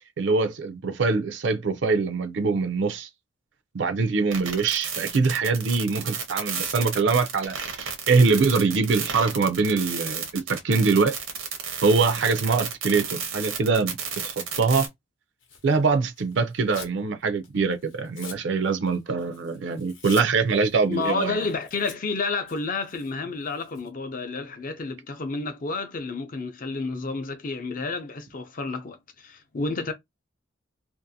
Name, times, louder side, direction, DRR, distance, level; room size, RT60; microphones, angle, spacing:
voice 1, 0.2-3.1 3.7-11.2 11.8-14.0 14.2-14.9 15.6-21.4, right 4 dB, 60° right, 0.4 m, -23 dB
sound 1, 4.3-14.9, right 7 dB, 85° right, 0.7 m, -32 dB
Tearing, 15.4-17.0 17.4-23.9, left 6 dB, 70° left, 0.8 m, -46 dB
voice 2, 20.9-29.9, left 3 dB, 40° left, 0.5 m, -30 dB
2.6 x 2.4 x 2.6 m
head